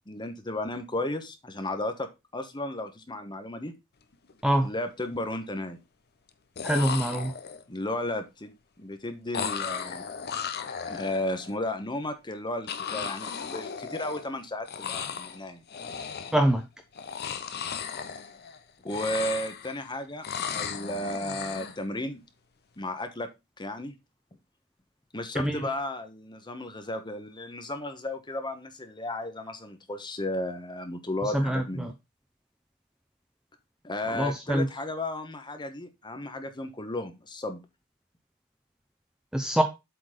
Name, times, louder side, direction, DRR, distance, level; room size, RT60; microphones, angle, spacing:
voice 1, 0.1-3.7 4.6-5.8 7.7-10.0 10.9-15.6 18.8-20.3 20.5-22.2 22.8-23.3 23.6-23.9 25.1-31.9 33.8-37.6, left 1 dB, 20° left, 7 dB, 1.1 m, -34 dB
sound 1, 4.1-4.3 4.7-5.3 6.3-6.4 6.6-7.8 9.3-11.5 12.7-14.4 14.6-15.4 15.7-16.5 16.9-18.6 18.8-19.9 20.2-21.8, left 7 dB, 45° left, 0.8 m, -35 dB
voice 2, 6.6-7.3 16.3-16.6 25.3-25.6 31.2-31.9 34.1-34.7 39.3-39.6, right 1 dB, 5° right, 5 dB, 0.7 m, -25 dB
7.8 x 4.2 x 5.0 m, 0.23 s
head